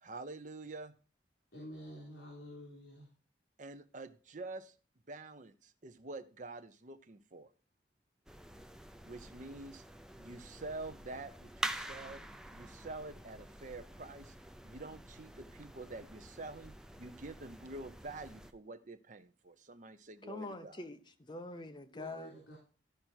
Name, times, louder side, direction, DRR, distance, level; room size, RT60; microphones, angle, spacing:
voice 1, 0.0-0.9 3.6-4.7 5.1-7.5 9.0-9.8 10.2-12.2 12.5-14.3 14.6-20.8, right 2 dB, 45° right, 0.7 m, -47 dB
voice 2, 1.5-3.1 21.9-22.6, equal, 70° left, 3.7 m, -49 dB
sound 1, 8.3-18.5, right 1 dB, 5° right, 0.5 m, -47 dB
voice 3, 20.2-22.3, left 2 dB, 25° left, 0.8 m, -45 dB
13.5 x 5.1 x 4.5 m
head